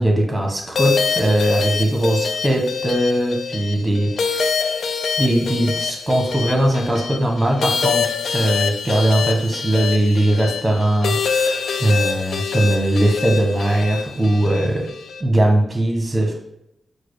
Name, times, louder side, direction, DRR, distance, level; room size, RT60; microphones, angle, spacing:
voice 1, 0.0-4.5 5.2-8.1 8.3-14.9 15.2-16.3, right 1 dB, 25° right, 1 dB, 1.2 m, -19 dB
sound 1, 0.8-15.2, left 5 dB, 85° left, 0.4 m, -25 dB
4.6 x 2.3 x 4.8 m, 0.82 s
cardioid pair, 65°, 0 cm